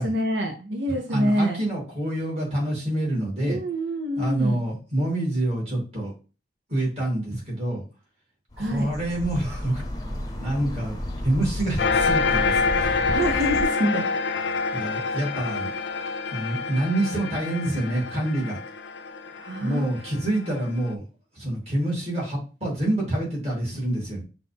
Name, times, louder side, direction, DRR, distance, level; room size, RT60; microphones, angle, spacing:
voice 1, 0.0-1.6 3.4-4.6 8.6-8.9 12.8-14.1 19.3-19.9, equal, 90° right, 3 dB, 0.7 m, -26 dB
voice 2, 1.1-3.6 4.2-6.1 6.7-7.8 8.6-9.8 10.4-11.0 11.2-12.9 14.7-15.7 16.3-18.6 19.6-21.0 21.3-24.2, right 1 dB, 35° right, -4 dB, 2.5 m, -27 dB
sound 1, 8.5-13.6, left 1 dB, 20° left, 0.7 m, -33 dB
sound 2, 11.8-20.8, left 4 dB, 90° left, 0.5 m, -27 dB
5.9 x 2.6 x 3.4 m, 0.34 s
head